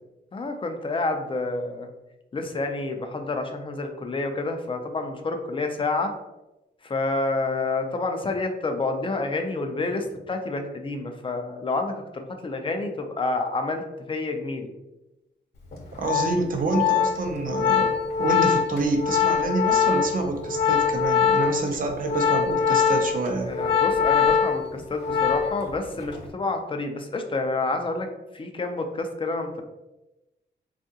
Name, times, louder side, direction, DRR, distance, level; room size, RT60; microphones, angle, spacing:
voice 1, 0.3-1.9 2.3-6.1 6.8-13.8 14.1-14.7 23.4-28.1 28.3-29.6, left 3 dB, 30° left, 5 dB, 0.4 m, -28 dB
Organ, 15.7-25.7 26.0-26.3, left 7 dB, 60° left, 0.9 m, -23 dB
voice 2, 16.0-23.5, right 3 dB, 45° right, 3 dB, 0.5 m, -27 dB
3.5 x 2.4 x 2.7 m, 0.99 s
cardioid pair, 100°, 19 cm